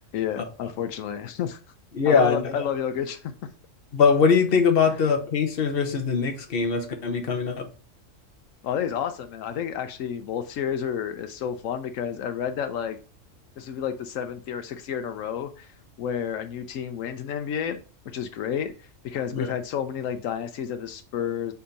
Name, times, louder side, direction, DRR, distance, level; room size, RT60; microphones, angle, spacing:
voice 1, 0.1-1.6 2.0-3.3 4.9-5.0 8.6-13.0 13.6-17.8 18.1-21.5, left 8 dB, 85° left, 1.0 m, -30 dB
voice 2, 1.9-2.5 3.9-7.7 19.3-19.5, left 5 dB, 50° left, 1.1 m, -22 dB
6.9 x 2.8 x 5.1 m
omnidirectional pair, 1.3 m